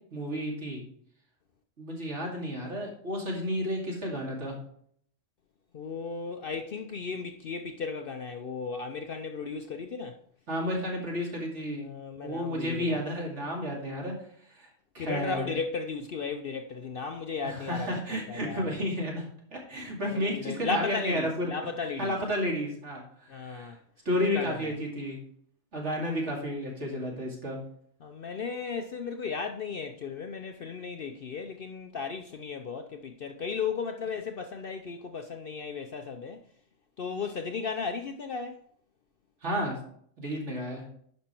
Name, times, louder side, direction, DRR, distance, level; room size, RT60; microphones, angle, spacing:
voice 1, 0.1-0.8 1.8-4.5 10.5-11.9 12.2-14.1 14.6-14.7 14.9-15.5 17.4-21.5 22.0-23.7 24.0-25.2 25.7-27.6 39.4-39.8 40.2-40.8, equal, 60° right, 2.7 m, -32 dB
voice 2, 5.7-10.2 11.8-13.0 15.0-17.9 18.3-18.7 20.1-22.1 23.3-23.8 24.3-24.7 28.0-36.4 37.0-38.6, left 5 dB, 55° left, 0.7 m, -35 dB
10.5 x 5.4 x 4.4 m
omnidirectional pair, 1.4 m